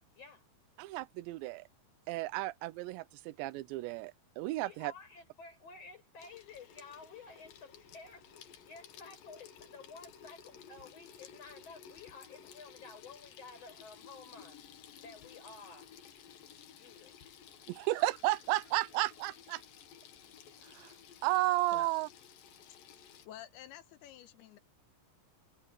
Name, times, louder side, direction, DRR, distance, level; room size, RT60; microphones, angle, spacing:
voice 1, 0.1-0.5 4.6-8.3 8.6-15.9 16.8-17.1, left 4 dB, 35° left, 6.4 m, -52 dB
voice 2, 0.8-1.6 2.1-4.9 17.7-19.6 20.6-20.9 21.2-22.1, right 18 dB, 85° right, 2.9 m, -33 dB
Water tap faucet / Sink (filling or washing), 6.2-23.3, left 8 dB, 60° left, 3.0 m, -55 dB
voice 3, 23.3-24.6, left 12 dB, 75° left, 2.7 m, -50 dB
omnidirectional pair, 5.1 m